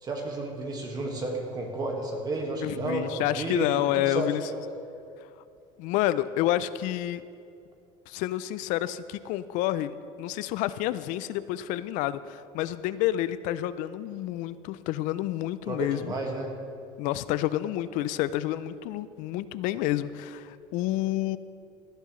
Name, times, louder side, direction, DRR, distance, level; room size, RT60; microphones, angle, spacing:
voice 1, 0.0-4.6 15.7-16.5, right 2 dB, 30° right, 1 dB, 1.8 m, -32 dB
voice 2, 2.6-4.4 5.8-7.2 8.1-16.1 17.0-21.4, left 13 dB, 70° left, 15 dB, 0.5 m, -29 dB
17.0 x 11.5 x 3.2 m, 2.5 s
cardioid pair, 125°, 14 cm